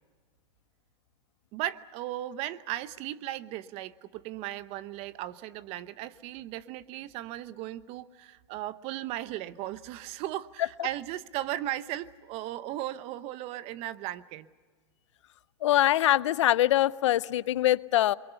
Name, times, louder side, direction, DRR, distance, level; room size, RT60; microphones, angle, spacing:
voice 1, 1.5-14.5, right 14 dB, 40° right, 0.9 m, -36 dB
voice 2, 15.6-18.1, left 13 dB, 80° left, 0.6 m, -23 dB
28.0 x 22.5 x 6.9 m
supercardioid pair, 135°, 15 cm